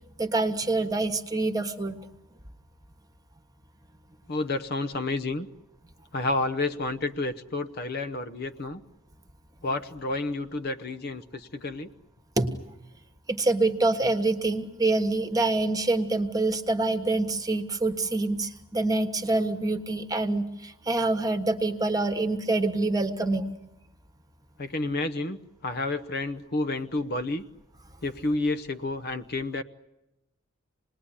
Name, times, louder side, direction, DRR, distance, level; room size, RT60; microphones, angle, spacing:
voice 1, 0.2-2.0 12.4-12.6 13.3-23.5, right 2 dB, 15° right, 7 dB, 1.4 m, -26 dB
voice 2, 4.3-5.5 6.1-8.8 9.6-11.9 24.6-25.4 25.6-27.4 28.0-29.6, left 2 dB, 45° left, 11 dB, 0.9 m, -30 dB
27.5 x 20.0 x 10.0 m, 0.96 s
head